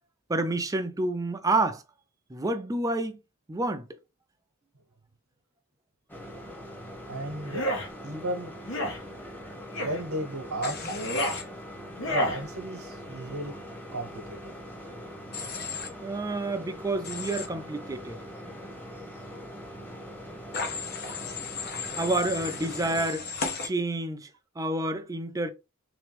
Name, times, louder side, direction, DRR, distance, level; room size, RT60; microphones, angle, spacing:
voice 1, 0.3-1.8 2.3-3.2 3.5-3.9 16.0-18.2 22.0-23.3 23.6-24.3 24.6-25.5, right 2 dB, 15° right, 0.4 m, -29 dB
sound 1, 6.1-23.1, equal, 10° left, 1.1 m, -42 dB
voice 2, 7.1-7.7 8.0-8.5 9.8-11.1 12.1-13.6 13.9-14.5, right 1 dB, 90° right, 1.0 m, -34 dB
sound 2, 7.4-7.9 8.6-9.0 9.7-10.0 10.8-11.4 12.0-12.4, equal, 65° left, 1.2 m, -30 dB
Human voice / Train, 10.6-11.4 15.3-15.9 17.0-17.5 20.5-23.7, left 5 dB, 50° left, 0.9 m, -35 dB
3.4 x 3.0 x 3.3 m
head